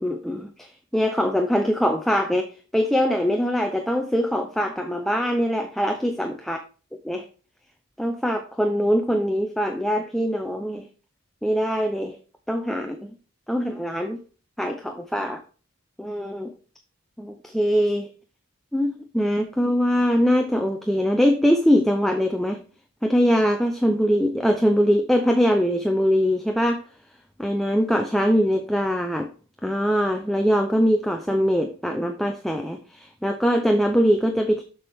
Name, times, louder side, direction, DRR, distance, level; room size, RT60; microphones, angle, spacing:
voice 1, 0.0-6.6 7.0-7.3 8.0-10.9 11.4-12.1 12.5-13.1 13.5-14.2 14.6-15.4 16.0-16.5 17.2-18.1 18.7-22.6 23.0-26.8 27.4-29.3 29.6-34.6, equal, ahead, 0.6 m, -22 dB
7.2 x 6.2 x 3.5 m
head